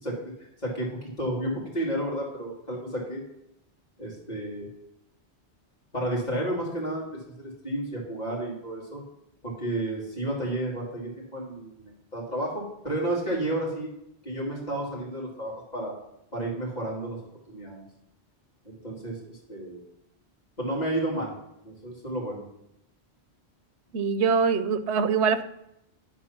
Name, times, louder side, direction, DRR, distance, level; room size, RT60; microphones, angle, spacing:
voice 1, 0.0-3.2 4.0-4.7 5.9-7.1 7.4-9.0 9.4-13.9 14.2-16.0 16.3-17.2 17.5-17.8 18.6-19.8 20.6-21.4 21.6-22.4, right 1 dB, 40° left, -4 dB, 2.9 m, -31 dB
voice 2, 23.9-25.4, right 5 dB, 90° right, 11 dB, 1.0 m, -23 dB
10.5 x 4.6 x 5.9 m, 0.80 s
omnidirectional pair, 1.1 m